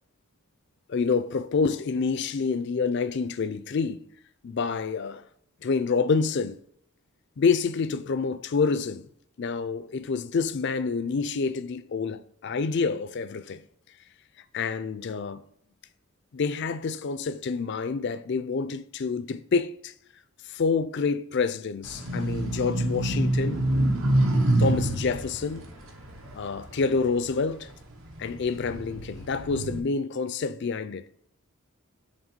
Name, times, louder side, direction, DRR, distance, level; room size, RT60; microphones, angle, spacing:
voice 1, 0.9-4.0 4.4-5.2 5.6-6.6 7.4-9.1 9.4-13.6 14.5-15.4 16.3-19.9 20.5-23.7 24.6-25.7 26.3-27.7 28.2-31.1, left 5 dB, 50° left, 0.4 m, -27 dB
sound 1, 21.8-27.4 27.9-29.8, right 1 dB, 65° right, 1.1 m, -26 dB
7.2 x 3.5 x 5.3 m
head